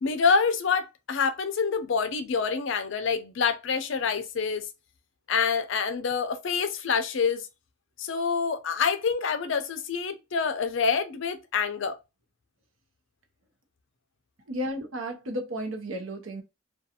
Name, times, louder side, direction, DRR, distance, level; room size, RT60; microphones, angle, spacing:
voice 1, 0.0-4.7 5.3-7.5 8.0-11.9, left 5 dB, 60° left, 0.5 m, -26 dB
voice 2, 14.5-16.4, equal, 70° right, 0.7 m, -33 dB
2.5 x 2.3 x 2.7 m
head